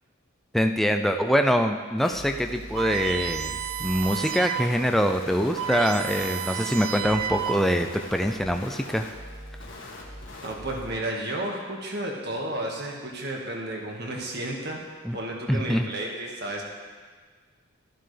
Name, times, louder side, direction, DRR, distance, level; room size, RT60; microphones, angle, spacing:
voice 1, 0.5-9.1 15.0-15.2 15.5-15.9, equal, ahead, 5 dB, 0.4 m, -24 dB
sound 1, 2.0-10.9, left 1 dB, 65° left, 1.7 m, -41 dB
sound 2, 2.8-4.8 5.1-5.2 5.4-7.9, right 11 dB, 85° right, 0.5 m, -32 dB
voice 2, 10.4-14.8 15.1-16.6, right 1 dB, 50° right, 0 dB, 1.8 m, -32 dB
12.5 x 11.0 x 3.4 m, 1.5 s
head